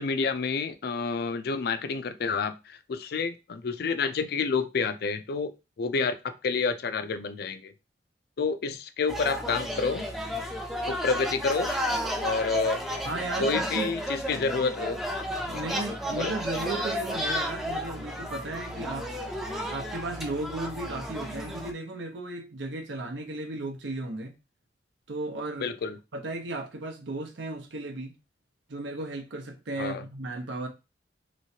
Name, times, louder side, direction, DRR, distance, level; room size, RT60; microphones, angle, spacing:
voice 1, 0.0-5.5 5.8-7.7 8.4-10.1 10.9-11.7 12.2-12.8 13.4-15.0 15.5-15.7 16.2-16.3 25.6-26.0 29.8-30.0, left 4 dB, 60° left, 0.4 m, -29 dB
sound 1, 9.1-21.7, equal, ahead, 0.4 m, -32 dB
voice 2, 13.0-13.9 14.4-14.5 15.4-19.1 19.7-24.3 25.1-25.7 26.1-28.1 28.7-30.7, right 2 dB, 80° right, 0.7 m, -35 dB
3.1 x 3.0 x 2.7 m
head